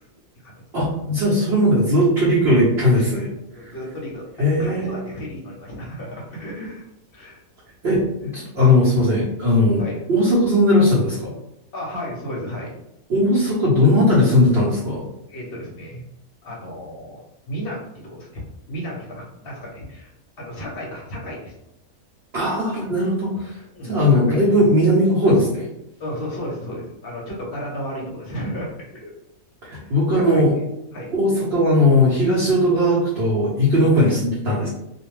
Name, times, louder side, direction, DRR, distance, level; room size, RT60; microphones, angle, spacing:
voice 1, 0.7-3.3 3.6-3.7 4.4-5.0 7.8-9.8 10.1-11.3 13.1-15.1 22.3-23.6 23.9-25.7 29.6-30.5 31.1-34.7, left 1 dB, 55° right, -8 dB, 0.9 m, -18 dB
voice 2, 3.5-4.2 4.6-6.8 7.1-7.4 7.9-8.0 9.8-10.0 11.7-12.8 15.3-16.0 16.4-20.1 20.4-21.5 23.7-24.4 26.0-29.1 29.8-30.6 30.9-31.1 33.9-34.1, equal, 50° left, -3 dB, 0.8 m, -33 dB
2.4 x 2.2 x 3.1 m, 0.84 s
omnidirectional pair, 1.5 m